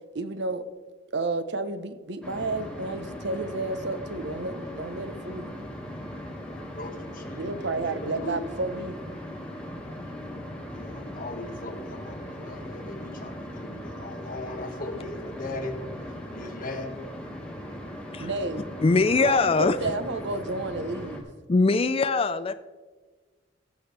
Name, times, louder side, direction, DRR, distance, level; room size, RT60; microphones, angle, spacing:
voice 1, 0.1-0.7 1.1-5.5 7.3-9.0 18.2-18.7 19.2-21.3, right 2 dB, 65° right, 11 dB, 0.8 m, -31 dB
sound 1, 2.2-21.2, equal, 5° left, 1.7 m, -39 dB
voice 2, 6.2-8.4 10.7-15.8 16.3-16.9, left 2 dB, 45° left, 3 dB, 1.7 m, -39 dB
voice 3, 18.8-19.8 21.5-22.5, left 3 dB, 30° left, 10 dB, 0.4 m, -22 dB
19.0 x 7.3 x 3.3 m, 1.4 s
head